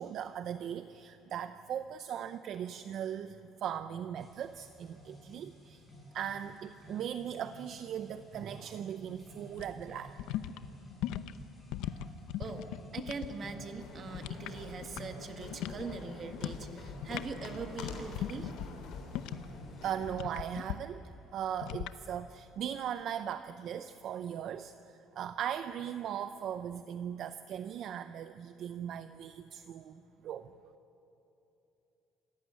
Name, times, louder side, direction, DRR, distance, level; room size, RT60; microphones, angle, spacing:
voice 1, 0.0-5.8 6.1-10.2 19.8-30.5, right 9 dB, 50° right, 10 dB, 0.6 m, -39 dB
sound 1, 4.2-19.9, equal, ahead, 7.6 m, -52 dB
sound 2, 9.5-13.3 13.6-15.3 15.5-15.9 16.3-16.7 16.9-19.6 20.1-20.8 21.6-22.0, left 12 dB, 85° left, 0.7 m, -39 dB
voice 2, 12.4-18.5, right 4 dB, 35° right, 6 dB, 1.7 m, -42 dB
sound 3, 13.4-20.5, left 4 dB, 65° left, 3.5 m, -47 dB
27.0 x 15.0 x 9.5 m, 2.9 s
cardioid pair, 155°, 0 cm